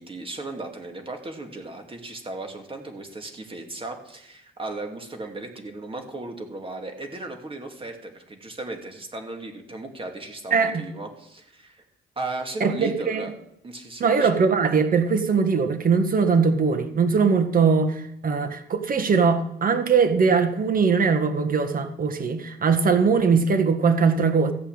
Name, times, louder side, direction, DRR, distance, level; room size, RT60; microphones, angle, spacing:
voice 1, 0.0-11.8 12.2-13.3 13.6-14.3, right 2 dB, 25° right, 4 dB, 2.5 m, -36 dB
voice 2, 10.5-10.8 12.6-13.3 14.0-24.5, right 5 dB, 45° right, 7 dB, 1.7 m, -21 dB
14.5 x 5.7 x 8.8 m, 0.76 s
cardioid pair, 90°, 20 cm